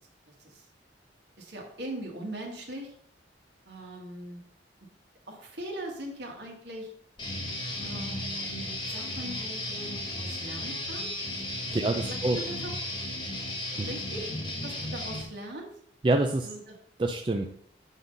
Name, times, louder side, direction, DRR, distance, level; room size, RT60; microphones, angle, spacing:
voice 1, 1.4-2.9 3.7-4.4 5.3-6.9 7.8-11.1 11.7-11.8 12.1-12.7 13.9-15.7 16.4-16.8, right 1 dB, 65° right, 1 dB, 1.7 m, -40 dB
Guitar, 7.2-15.2, left 1 dB, 25° left, 1.4 m, -35 dB
voice 2, 11.7-12.4 13.8-13.9 16.0-16.5 17.0-17.4, right 2 dB, 25° right, 4 dB, 0.4 m, -26 dB
8.2 x 3.9 x 5.3 m, 0.64 s
head